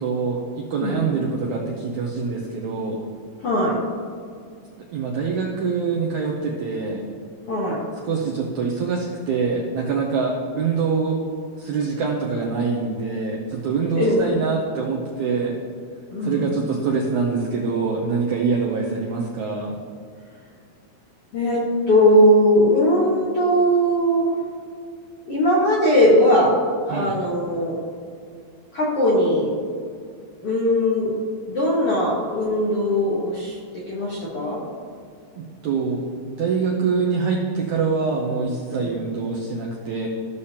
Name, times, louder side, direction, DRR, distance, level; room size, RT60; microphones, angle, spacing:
voice 1, 0.0-3.0 4.9-7.0 8.0-11.2 11.6-15.6 16.2-19.7 26.9-27.1 35.4-40.1, right 5 dB, 90° right, -1 dB, 1.7 m, -24 dB
voice 2, 3.4-3.8 7.5-7.8 13.9-14.2 16.1-16.5 21.3-24.3 25.2-26.6 26.9-27.8 28.7-29.5 30.4-31.1 31.5-33.6 33.9-34.6 38.8-38.9, equal, 60° left, -6 dB, 1.5 m, -19 dB
15.5 x 6.5 x 2.9 m, 2.1 s
omnidirectional pair, 4.5 m